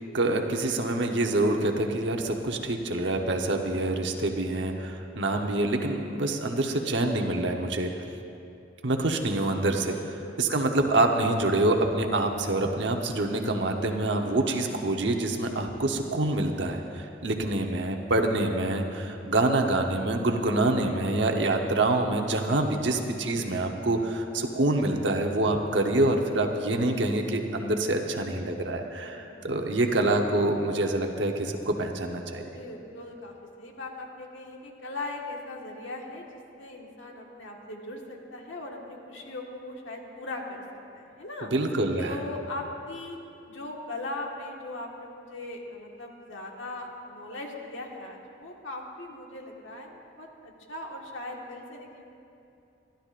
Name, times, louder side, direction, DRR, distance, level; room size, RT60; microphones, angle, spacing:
voice 1, 0.1-7.9 8.8-32.5 41.5-42.2, right 2 dB, 70° right, 3 dB, 1.0 m, -26 dB
voice 2, 9.9-10.4 28.9-29.4 32.4-40.6 40.9-41.5 42.0-43.2 43.5-52.0, left 2 dB, 80° left, 0 dB, 1.6 m, -39 dB
27.0 x 11.5 x 2.5 m, 2.7 s
head